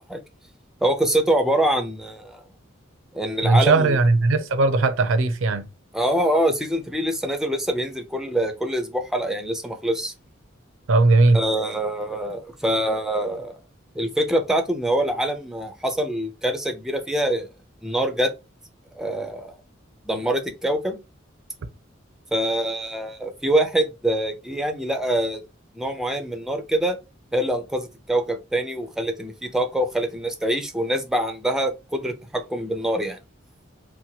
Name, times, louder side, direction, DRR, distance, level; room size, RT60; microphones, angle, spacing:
voice 1, 0.8-2.4 3.1-4.0 5.9-10.1 11.3-13.6 13.9-17.5 17.8-18.3 19.0-19.5 20.0-21.0 22.3-25.4 25.7-27.0 27.3-33.2, right 1 dB, 5° right, 0.4 m, -24 dB
voice 2, 3.4-5.6 10.9-11.4, right 3 dB, 85° right, 0.5 m, -18 dB
2.8 x 2.2 x 2.7 m
head